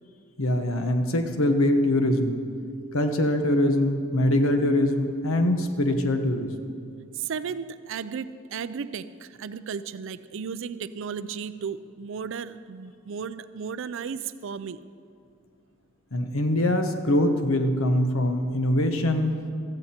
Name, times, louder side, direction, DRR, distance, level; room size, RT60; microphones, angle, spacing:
voice 1, 0.4-2.4 2.9-6.5 16.1-19.3, left 1 dB, 80° left, 6 dB, 1.2 m, -23 dB
voice 2, 7.1-14.8, right 6 dB, 65° right, 14 dB, 0.4 m, -34 dB
16.0 x 14.0 x 4.4 m, 2.3 s
head